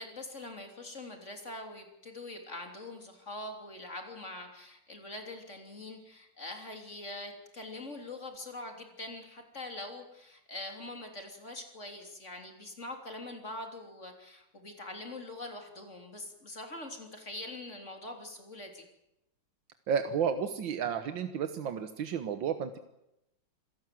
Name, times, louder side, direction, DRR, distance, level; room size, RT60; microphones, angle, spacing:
voice 1, 0.0-18.9, left 2 dB, 40° left, 4 dB, 3.6 m, -43 dB
voice 2, 19.9-22.8, right 7 dB, 80° right, 9 dB, 1.9 m, -32 dB
26.5 x 16.5 x 7.7 m, 0.86 s
omnidirectional pair, 2.0 m